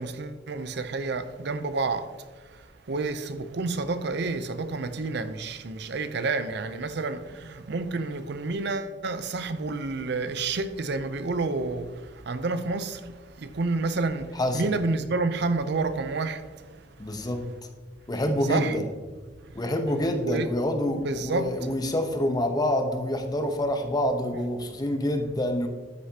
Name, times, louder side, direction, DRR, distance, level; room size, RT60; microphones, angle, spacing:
voice 1, 0.0-2.2 2.4-16.8 18.5-18.8 20.2-20.5 21.0-21.5, right 3 dB, 65° right, 0.6 m, -29 dB
voice 2, 14.4-14.7 17.0-17.5 18.1-18.9 19.5-25.7, left 1 dB, 20° left, 0.8 m, -27 dB
13.0 x 6.6 x 2.8 m
head